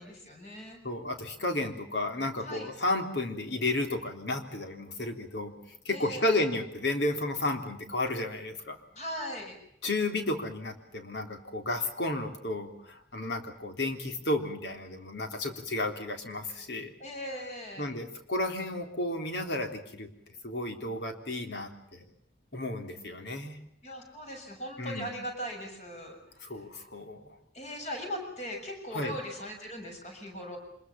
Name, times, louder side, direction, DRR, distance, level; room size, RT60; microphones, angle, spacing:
voice 1, 0.0-0.8 2.4-2.7 5.9-6.4 9.0-9.6 17.0-17.9 23.8-26.2 27.5-30.6, equal, 40° left, 3 dB, 6.9 m, -39 dB
voice 2, 0.8-5.5 5.9-8.8 9.8-16.9 17.8-20.1 20.4-22.0 22.5-23.6 24.8-25.1 26.4-27.4 28.9-29.1, left 2 dB, 75° left, 5 dB, 3.5 m, -32 dB
25.5 x 21.5 x 7.2 m, 0.74 s
head